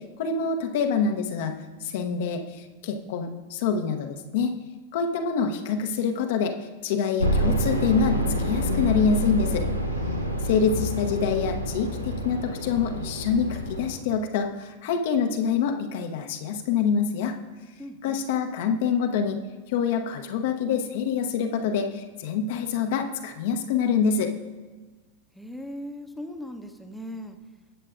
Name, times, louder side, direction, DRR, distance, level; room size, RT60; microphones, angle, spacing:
voice 1, 0.2-4.5 4.9-9.7 10.4-17.3 18.0-19.4 19.7-24.3, left 6 dB, 50° left, 4 dB, 0.9 m, -26 dB
sound 1, 7.2-14.0, equal, 85° right, 0.9 m, -27 dB
voice 2, 17.8-18.2 25.3-27.4, equal, ahead, 5 dB, 1.0 m, -38 dB
19.0 x 7.6 x 2.5 m, 1.3 s
figure-of-eight pair, 90°, 0 cm